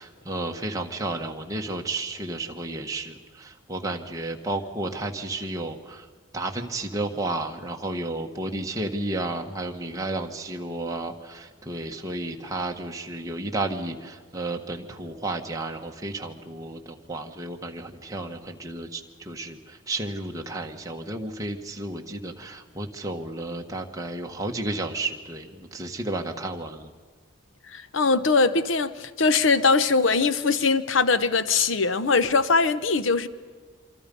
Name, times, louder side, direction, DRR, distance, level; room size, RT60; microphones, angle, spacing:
voice 1, 0.0-6.1 6.3-26.9, right 2 dB, 15° right, 1.5 m, -32 dB
voice 2, 27.7-33.3, left 4 dB, 65° left, 0.8 m, -21 dB
26.5 x 25.0 x 5.4 m
head